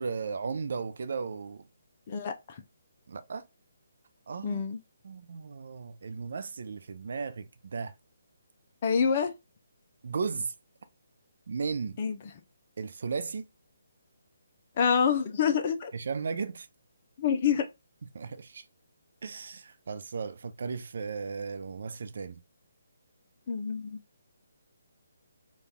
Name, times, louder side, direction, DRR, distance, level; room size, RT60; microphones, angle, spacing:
voice 1, 0.0-1.6 3.1-3.5 4.3-4.6 5.0-7.9 10.0-10.5 11.5-12.0 12.8-13.5 15.9-16.7 18.1-18.7 19.2-22.4, right 5 dB, 60° right, 0.4 m, -35 dB
voice 2, 2.1-2.6 4.4-4.8 8.8-9.3 12.0-12.2 14.8-15.9 17.2-17.7 23.5-24.0, left 7 dB, 40° left, 0.5 m, -27 dB
4.0 x 2.4 x 3.4 m
figure-of-eight pair, 150°, 0 cm